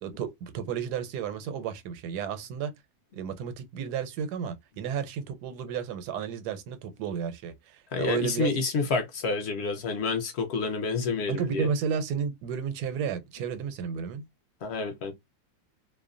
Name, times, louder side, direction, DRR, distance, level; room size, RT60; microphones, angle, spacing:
voice 1, 0.0-2.7 3.1-8.5 11.3-14.3, right 7 dB, 85° right, 1.2 m, -32 dB
voice 2, 7.9-11.7 14.6-15.1, left 4 dB, 60° left, 0.7 m, -29 dB
2.7 x 2.1 x 2.4 m
omnidirectional pair, 1.7 m